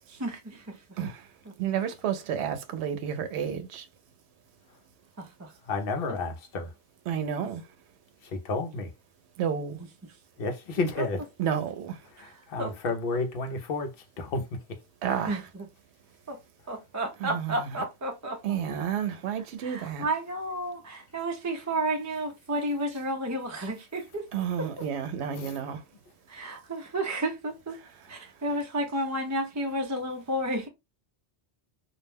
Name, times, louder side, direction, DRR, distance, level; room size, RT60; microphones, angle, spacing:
voice 1, 0.1-0.8 5.2-5.5 12.2-12.3 12.6-12.7 15.3-15.4 16.3-16.4 16.7-18.6 19.6-24.3 26.3-27.8 28.1-30.7, right 1 dB, 25° right, 0.4 m, -31 dB
voice 2, 1.0-1.3 1.6-3.9 7.1-7.7 9.4-9.8 11.4-12.0 15.0-15.5 17.2-17.7 18.4-20.1 24.3-25.8 27.8-28.3, right 8 dB, 85° right, 0.8 m, -31 dB
voice 3, 5.6-6.7 8.2-8.9 10.4-11.3 12.1-14.8 16.6-16.8 25.3-25.6 28.5-28.6, left 3 dB, 65° left, 0.8 m, -32 dB
2.4 x 2.1 x 3.2 m
omnidirectional pair, 1.1 m